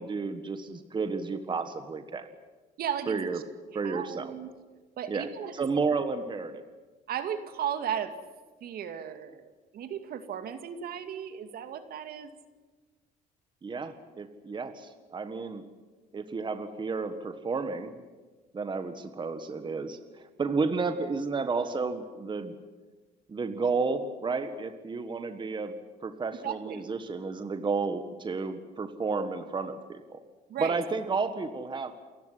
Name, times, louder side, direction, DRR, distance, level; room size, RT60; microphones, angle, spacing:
voice 1, 0.0-2.3 3.1-3.4 3.7-4.3 5.1-5.3 5.5-6.6 13.6-15.6 16.1-17.9 18.5-22.5 23.3-25.8 26.0-30.2 30.6-31.9, right 4 dB, 25° right, 9 dB, 1.7 m, -32 dB
voice 2, 2.8-3.4 3.8-4.5 5.0-5.8 7.1-8.1 8.6-12.3 26.3-26.8 30.5-30.8, right 9 dB, 65° right, 8 dB, 2.4 m, -35 dB
28.5 x 15.5 x 9.9 m, 1.4 s
cardioid pair, 110°, 17 cm